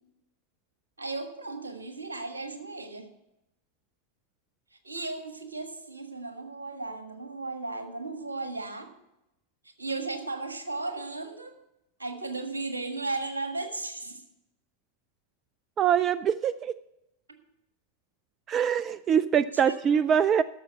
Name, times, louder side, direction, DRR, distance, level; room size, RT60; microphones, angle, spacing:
voice 1, 1.0-3.1 4.8-8.9 9.8-11.5 12.0-14.2 19.6-20.0, right 3 dB, 75° right, 7 dB, 1.5 m, -35 dB
voice 2, 15.8-16.7 18.5-20.4, right 8 dB, 30° right, 17 dB, 0.3 m, -24 dB
12.0 x 6.9 x 7.5 m, 0.88 s
figure-of-eight pair, 90°, 0 cm